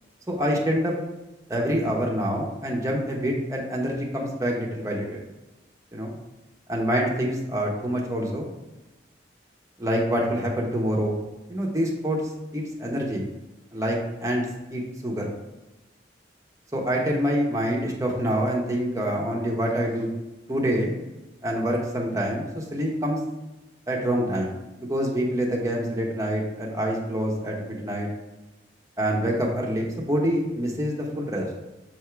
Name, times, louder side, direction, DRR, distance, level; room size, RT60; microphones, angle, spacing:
voice 1, 0.3-0.9 1.5-5.2 5.9-6.1 6.7-8.5 9.8-11.2 11.5-12.2 12.5-13.2 13.7-14.5 14.7-15.3 16.7-20.1 20.5-20.9 21.4-23.2 23.9-28.1 29.0-31.5, equal, 20° right, -2 dB, 1.1 m, -26 dB
7.2 x 3.6 x 4.6 m, 1.0 s
head